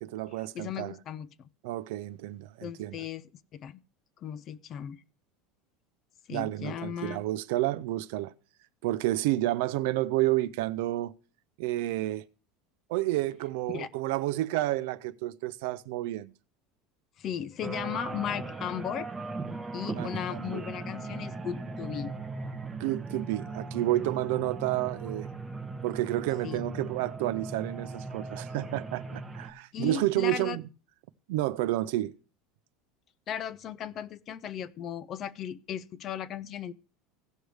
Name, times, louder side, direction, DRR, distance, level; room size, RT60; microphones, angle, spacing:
voice 1, 0.0-1.0 1.6-3.0 6.3-8.3 8.8-11.1 11.6-12.3 12.9-16.3 19.9-20.7 22.8-25.3 25.8-30.6 31.3-32.1, right 16 dB, 65° right, 0.5 m, -30 dB
voice 2, 0.5-1.5 2.6-3.8 4.2-5.0 6.3-7.2 13.7-13.9 17.2-19.1 19.7-22.1 26.4-26.6 29.7-30.6 33.3-36.7, left 9 dB, 30° left, 0.4 m, -36 dB
sound 1, 17.6-29.5, right 3 dB, 10° right, 0.8 m, -38 dB
17.0 x 6.4 x 3.3 m
cardioid pair, 175°, 0 cm